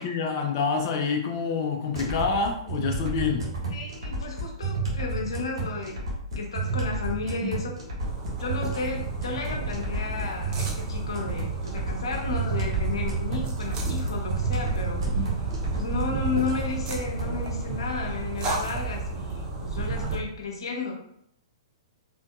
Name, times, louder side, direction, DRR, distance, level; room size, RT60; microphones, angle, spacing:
voice 1, 0.0-3.5, left 5 dB, 50° left, 3 dB, 0.5 m, -27 dB
sound 1, 2.0-17.4, right 3 dB, 70° right, 1.3 m, -32 dB
voice 2, 3.7-6.0 6.4-7.8 8.4-20.9, left 4 dB, 75° left, 0 dB, 0.8 m, -33 dB
sound 2, 8.0-20.2, right 4 dB, 25° right, 0.6 m, -31 dB
3.7 x 2.5 x 2.3 m, 0.71 s
hypercardioid pair, 120°, 3 cm